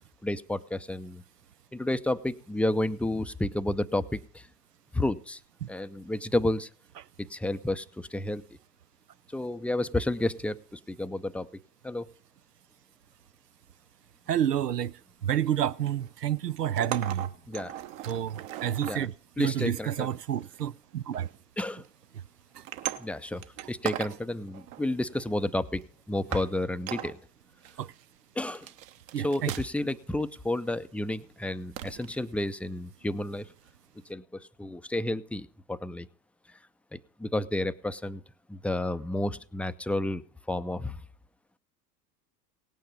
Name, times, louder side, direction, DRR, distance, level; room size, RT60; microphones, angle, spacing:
voice 1, 0.2-1.2 1.7-4.5 4.9-5.4 5.7-6.7 7.2-8.4 9.3-11.5 11.8-12.1 17.5-17.7 18.9-19.1 19.4-20.1 21.6-21.8 23.0-27.2 28.4-28.7 29.2-33.5 34.1-36.1 36.9-38.2 38.5-40.2 40.5-41.0, left 1 dB, 5° left, 0.6 m, -31 dB
voice 2, 14.3-14.9 15.2-17.3 18.1-19.1 19.4-21.3 27.8-27.9 29.1-29.5, right 10 dB, 80° right, 0.6 m, -29 dB
sound 1, 15.3-16.1 16.6-19.0 19.9-20.6 21.1-21.4 21.8-22.0 22.5-24.2 24.5-25.3 25.8-25.9 26.3-26.5 26.9-27.2 27.6-28.0 28.4-29.9 30.2-30.4 31.7-32.2 33.7-33.8, right 12 dB, 55° right, 1.3 m, -38 dB
18.0 x 9.3 x 5.4 m
figure-of-eight pair, 80°, 48 cm